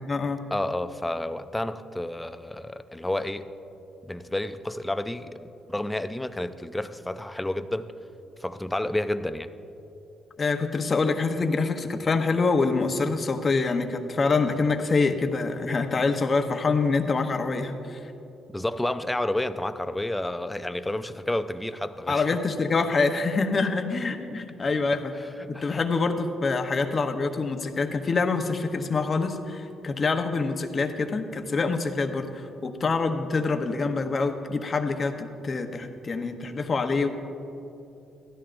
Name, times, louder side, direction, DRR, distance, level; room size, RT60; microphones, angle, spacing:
voice 1, 0.0-0.4 10.4-18.0 22.1-25.1 25.5-37.1, left 4 dB, 40° left, 0.9 m, -26 dB
voice 2, 0.5-3.5 4.1-5.4 5.7-7.9 8.4-9.5 18.5-22.2 25.4-25.8, left 1 dB, 10° left, 0.5 m, -30 dB
16.0 x 13.0 x 2.6 m
cardioid pair, 90°, 0 cm